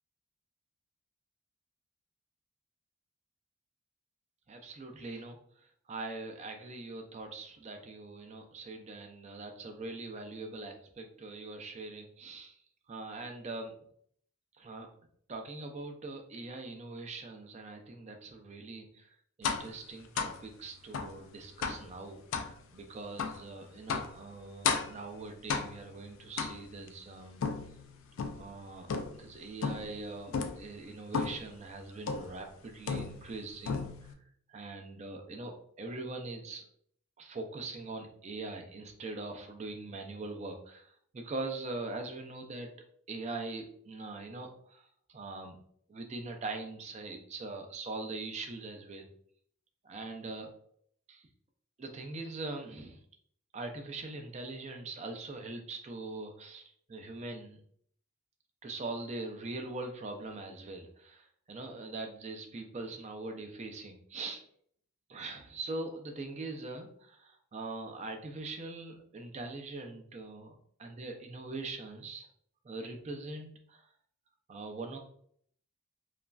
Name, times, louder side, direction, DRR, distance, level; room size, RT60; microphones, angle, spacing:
voice 1, 4.5-12.6 12.9-13.7 14.6-14.9 15.3-19.1 19.4-27.4 28.3-28.9 29.2-34.1 34.5-36.7 37.2-42.7 43.1-45.6 45.9-49.1 49.8-50.5 51.1-51.2 51.8-53.0 53.5-57.6 58.6-64.4 65.1-72.3 72.6-73.8 74.5-75.0, right 3 dB, 30° right, 4 dB, 0.3 m, -42 dB
sound 1, 19.4-19.7 20.2-20.4 20.9-21.2 21.6-21.9 22.3-22.5 23.2-23.4 23.9-24.2 24.6-25.0 25.5-25.9 26.4-26.9 27.4-28.5 28.9-29.3 29.6-30.0 30.3-30.6 31.1-31.5 32.1-32.4 32.9-33.4 33.7-34.1, left 5 dB, 65° left, 0.3 m, -34 dB
3.0 x 2.4 x 2.2 m, 0.63 s
head